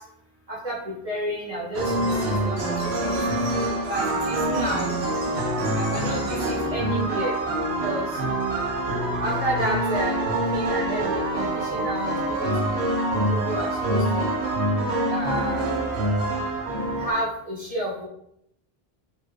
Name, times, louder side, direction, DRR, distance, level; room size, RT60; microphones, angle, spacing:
voice 1, 1.0-3.2 3.9-4.9 5.7-7.3 7.8-8.1 9.2-10.1 10.5-12.5 12.8-12.9 13.3-14.4 15.1-15.7 17.0-18.0, right 1 dB, 35° right, -6 dB, 1.1 m, -31 dB
sound 1, 1.7-17.1, right 1 dB, 80° right, 1.1 m, -25 dB
4.2 x 2.9 x 3.2 m, 0.76 s
omnidirectional pair, 1.1 m